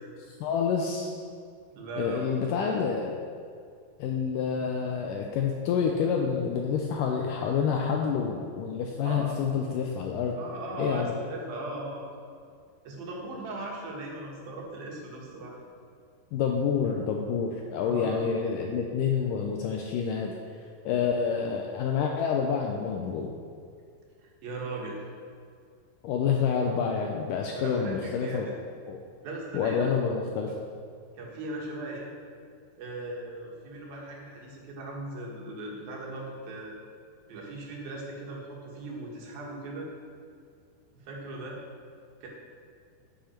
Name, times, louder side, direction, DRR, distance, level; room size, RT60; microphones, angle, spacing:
voice 1, 0.4-1.1 2.0-3.2 4.0-10.4 10.8-11.1 16.3-20.3 20.9-23.3 26.0-28.5 28.9-29.1 29.5-30.6, left 6 dB, 80° left, 1 dB, 1.9 m, -28 dB
voice 2, 1.7-2.5 9.0-9.7 10.4-12.0 12.8-15.6 17.8-18.3 24.2-25.0 27.5-28.5 29.2-29.9 31.2-32.1 32.8-36.8 37.3-39.9 41.0-41.6 42.2-42.3, right 2 dB, 75° right, -2 dB, 3.3 m, -38 dB
10.0 x 8.2 x 4.4 m, 2.2 s
omnidirectional pair, 4.3 m